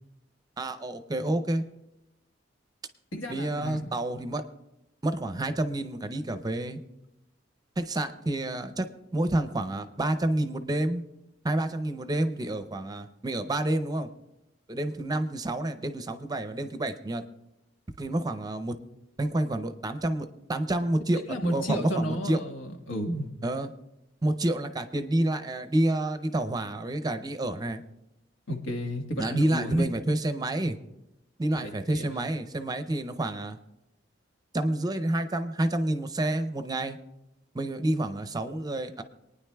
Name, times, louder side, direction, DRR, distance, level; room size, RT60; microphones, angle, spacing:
voice 1, 0.6-1.6 3.3-4.4 5.0-6.8 7.8-8.9 9.1-11.0 11.4-14.1 14.7-17.2 18.0-18.8 19.2-22.4 23.4-23.7 24.2-27.8 29.2-30.8 31.4-33.6 34.5-37.0 37.5-39.0, right 1 dB, 20° right, 9 dB, 0.6 m, -29 dB
voice 2, 3.1-3.9 21.3-23.3 28.5-29.8 31.5-32.2, equal, 85° left, 3 dB, 1.4 m, -31 dB
27.0 x 9.6 x 2.2 m, 0.90 s
head